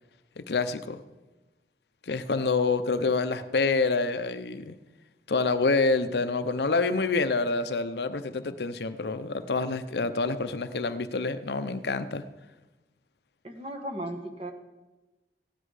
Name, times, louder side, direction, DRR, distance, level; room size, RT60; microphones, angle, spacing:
voice 1, 0.4-1.0 2.1-4.8 5.3-12.2, left 3 dB, 70° left, 11 dB, 0.6 m, -27 dB
voice 2, 13.4-14.5, right 1 dB, 35° right, 5 dB, 1.3 m, -36 dB
16.0 x 10.0 x 4.9 m, 1.1 s
head